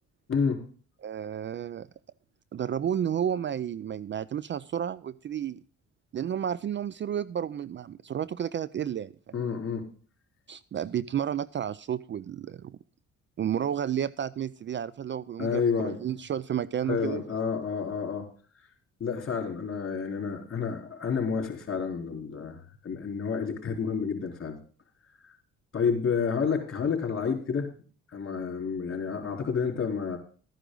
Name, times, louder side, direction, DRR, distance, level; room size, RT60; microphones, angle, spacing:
voice 1, 0.3-0.7 9.3-9.8 15.4-16.0 16.8-18.3 19.0-24.6 25.7-27.7 28.1-30.2, left 6 dB, 45° left, 1 dB, 3.9 m, -29 dB
voice 2, 1.0-1.9 2.5-5.6 6.1-9.4 10.5-12.8 13.4-17.2, right 9 dB, 40° right, 18 dB, 0.4 m, -31 dB
13.0 x 10.0 x 3.8 m, 0.41 s
cardioid pair, 90°, 30 cm